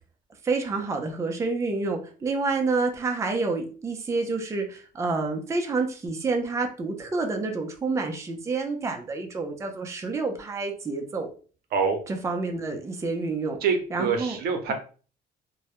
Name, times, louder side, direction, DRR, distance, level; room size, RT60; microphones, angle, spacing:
voice 1, 0.4-11.3 12.1-13.6 13.9-14.4, right 3 dB, 15° right, 3 dB, 0.4 m, -28 dB
voice 2, 13.6-14.7, right 5 dB, 65° right, 5 dB, 0.6 m, -25 dB
2.2 x 2.0 x 2.8 m, 0.38 s
cardioid pair, 110°, 17 cm